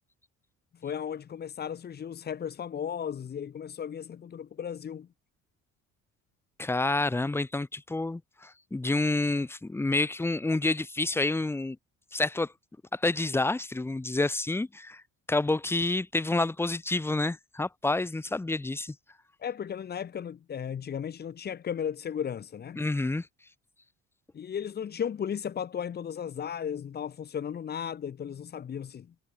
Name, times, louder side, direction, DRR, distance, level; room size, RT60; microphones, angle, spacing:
voice 1, 0.7-5.1 19.4-22.9 24.3-29.1, left 8 dB, 35° left, 7.4 m, -35 dB
voice 2, 6.6-11.8 12.1-12.5 12.9-15.0 15.3-18.9 22.8-23.3, left 2 dB, 10° left, 2.1 m, -28 dB
cardioid pair, 175°, 29 cm